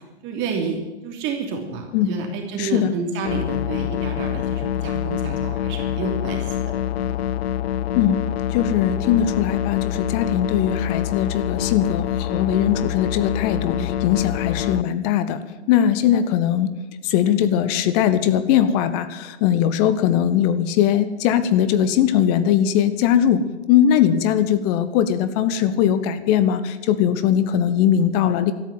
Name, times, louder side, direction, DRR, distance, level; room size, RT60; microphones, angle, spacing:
voice 1, 0.2-6.6 6.9-7.2 13.8-13.9, right 4 dB, 35° right, 3 dB, 3.0 m, -29 dB
voice 2, 2.6-3.0 7.9-8.2 8.5-15.4 15.7-16.7 17.0-28.5, left 10 dB, 35° left, 12 dB, 1.1 m, -20 dB
sound 1, 3.3-14.8, left 11 dB, 65° left, 0.5 m, -25 dB
13.5 x 10.5 x 9.3 m, 1.2 s
hypercardioid pair, 115°, 33 cm